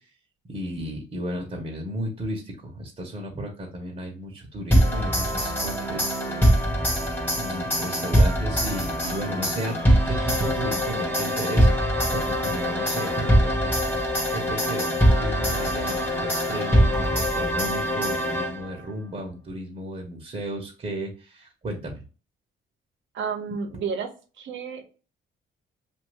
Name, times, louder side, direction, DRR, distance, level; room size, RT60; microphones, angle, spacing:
voice 1, 0.5-6.5 7.3-11.8 12.1-13.7 14.3-22.0, right 1 dB, 35° right, 0 dB, 1.0 m, -34 dB
sound 1, 4.7-18.8, equal, 10° left, 1.1 m, -23 dB
voice 2, 23.1-24.1 24.4-24.8, right 6 dB, 70° right, 5 dB, 0.9 m, -31 dB
2.6 x 2.6 x 3.1 m, 0.35 s
cardioid pair, 90°, 20 cm